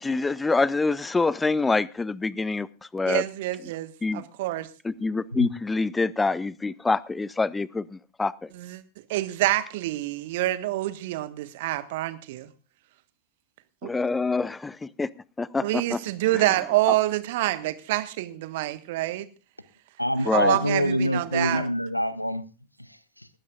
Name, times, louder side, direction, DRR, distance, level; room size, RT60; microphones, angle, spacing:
voice 1, 0.0-2.7 2.9-3.2 4.0-4.2 4.8-7.8 8.2-8.3 13.8-15.1 15.4-16.0 16.3-16.4 20.3-20.5, left 3 dB, 10° left, 22 dB, 0.6 m, -25 dB
voice 2, 3.1-4.7 8.5-8.8 9.1-12.5 13.8-13.9 15.6-19.3 20.3-21.6, right 16 dB, 50° right, 13 dB, 1.3 m, -27 dB
voice 3, 20.0-22.4 22.8-23.3, equal, 90° left, 16 dB, 0.8 m, -26 dB
20.0 x 15.5 x 2.4 m, 0.34 s
figure-of-eight pair, 90°, 0 cm